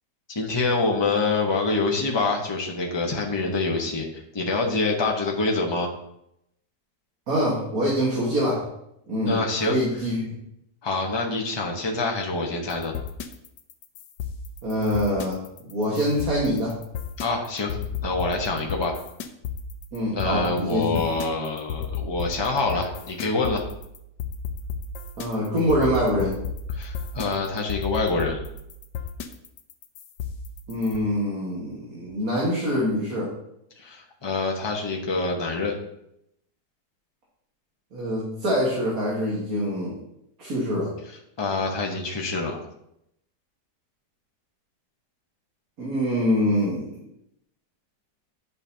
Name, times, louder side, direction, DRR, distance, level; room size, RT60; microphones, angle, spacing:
voice 1, 0.3-5.9 9.3-9.8 10.8-12.9 17.2-17.8 18.0-19.0 20.1-23.6 26.7-28.4 33.8-35.7 41.4-42.6, left 3 dB, 20° left, 0 dB, 0.8 m, -26 dB
voice 2, 7.3-8.7 9.1-9.4 9.7-10.3 14.6-15.4 15.7-16.7 19.9-21.0 25.2-26.4 30.7-33.3 37.9-39.9 40.4-40.9 45.8-46.9, equal, 55° right, -6 dB, 2.0 m, -24 dB
sound 1, 12.7-31.0, left 6 dB, 85° left, 1.3 m, -34 dB
10.5 x 5.2 x 2.8 m, 0.78 s
omnidirectional pair, 1.8 m